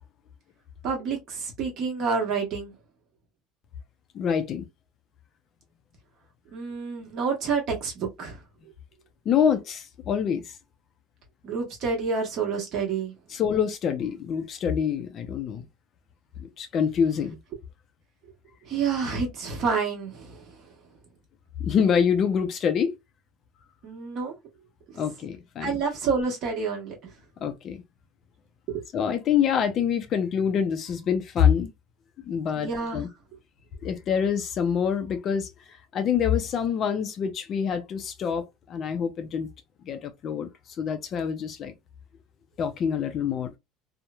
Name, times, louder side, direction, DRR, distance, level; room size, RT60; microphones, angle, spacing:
voice 1, 0.8-2.7 6.5-8.4 11.4-13.1 18.6-20.5 23.8-24.4 25.6-26.9 28.7-28.8 32.6-33.0, right 5 dB, 45° right, 1.1 m, -28 dB
voice 2, 4.1-4.6 9.3-10.5 13.3-15.6 16.4-17.4 21.6-23.0 25.0-25.8 27.4-27.8 28.9-31.7 32.2-33.1 33.8-35.5 35.9-39.5 39.8-40.5 40.8-41.7 42.6-43.5, left 7 dB, 35° left, 0.4 m, -26 dB
2.9 x 2.0 x 2.2 m
cardioid pair, 160°, 0 cm